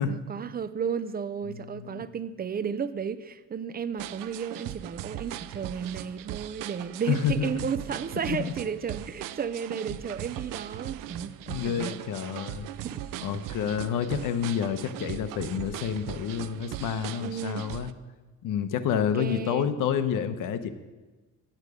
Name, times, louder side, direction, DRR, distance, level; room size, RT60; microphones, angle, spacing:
voice 1, 0.1-12.0 12.8-13.1 17.2-17.7 18.9-19.8, right 7 dB, 30° right, 14 dB, 0.4 m, -33 dB
voice 2, 1.5-2.0 7.1-7.7 8.3-8.5 11.5-12.7 13.2-17.9 18.4-20.7, left 8 dB, 75° left, 10 dB, 0.9 m, -29 dB
sound 1, 4.0-17.9, right 13 dB, 85° right, 0.5 m, -39 dB
10.5 x 9.1 x 4.9 m, 1.2 s
cardioid pair, 110°, 32 cm